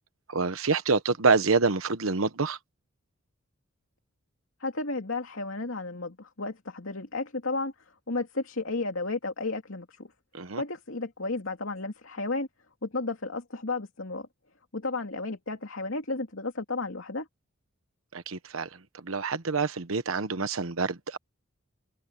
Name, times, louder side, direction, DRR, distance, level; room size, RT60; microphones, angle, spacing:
voice 1, 0.3-2.6 10.3-10.6 18.1-18.7 19.0-21.2, right 4 dB, 90° right, 1.1 m, -26 dB
voice 2, 4.6-7.7 8.1-10.1 10.6-12.5 12.8-14.3 14.7-17.3, left 3 dB, 75° left, 2.6 m, -33 dB
head